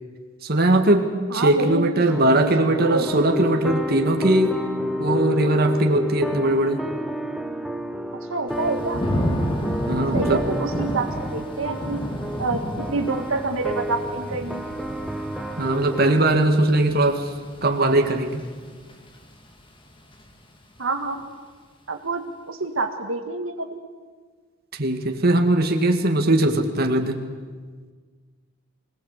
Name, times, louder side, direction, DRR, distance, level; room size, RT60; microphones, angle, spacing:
voice 1, 0.4-4.6 5.0-6.8 9.9-10.4 15.6-17.2 17.6-18.4 24.8-27.3, right 1 dB, 50° right, 4 dB, 2.0 m, -20 dB
voice 2, 1.3-2.0 2.3-2.5 2.8-3.1 8.3-9.0 10.1-12.0 12.4-14.7 20.8-21.2 21.9-23.8, right 3 dB, 75° right, 5 dB, 1.8 m, -27 dB
sound 1, 2.1-16.1, equal, ahead, 1.1 m, -30 dB
Thunder / Rain, 8.5-19.4 19.8-20.3, equal, 25° left, 2.3 m, -31 dB
25.0 x 19.0 x 8.3 m, 1.5 s
head